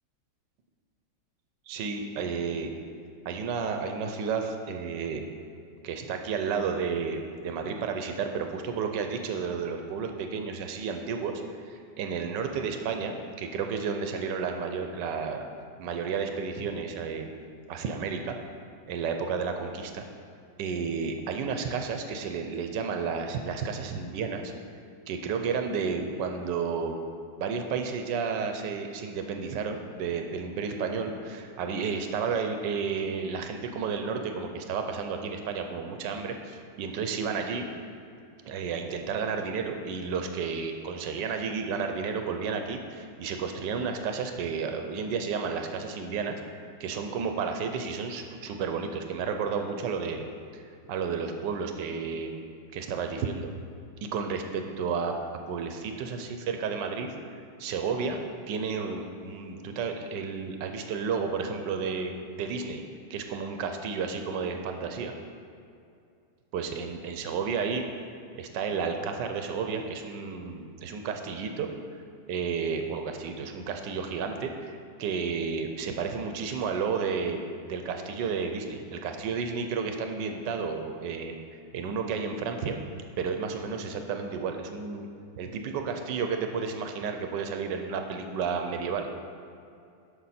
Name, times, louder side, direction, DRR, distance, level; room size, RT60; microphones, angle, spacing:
voice 1, 1.7-2.7 3.2-5.2 5.8-15.4 15.8-17.3 17.7-18.4 18.9-20.0 20.6-24.5 25.1-27.0 27.4-37.7 38.4-46.4 46.8-50.3 50.9-52.4 52.7-53.5 54.0-55.1 55.5-58.2 58.5-62.8 63.1-65.1 66.5-67.8 68.3-71.7 72.3-81.4 81.7-82.8 83.2-85.1 85.4-89.1, right 5 dB, 90° right, 5 dB, 1.3 m, -32 dB
11.5 x 6.3 x 4.3 m, 2.5 s
omnidirectional pair, 1.9 m